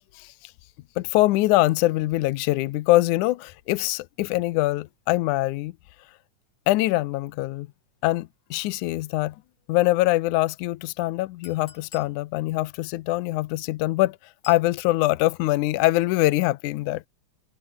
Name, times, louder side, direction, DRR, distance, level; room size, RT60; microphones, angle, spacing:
voice 1, 0.1-0.5 1.0-5.7 6.7-7.7 8.0-9.4 9.7-17.0, left 18 dB, 85° left, 2.1 m, -23 dB
Chink clink, 11.4-12.2 14.4-14.7, left 6 dB, 60° left, 4.6 m, -48 dB
omnidirectional pair, 3.5 m